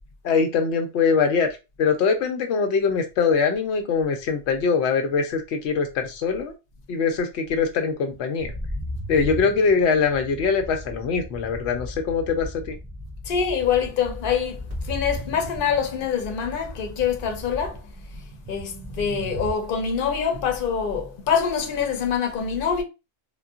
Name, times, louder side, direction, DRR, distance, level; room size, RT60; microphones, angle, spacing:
voice 1, 0.2-1.5 1.8-6.5 6.9-8.5 9.1-12.8, left 5 dB, 90° left, 0.9 m, -22 dB
sound 1, 8.4-19.5, equal, 15° right, 1.4 m, -36 dB
voice 2, 13.3-17.8 18.5-22.8, left 7 dB, 55° left, 0.8 m, -25 dB
3.8 x 2.2 x 2.3 m
omnidirectional pair, 1.1 m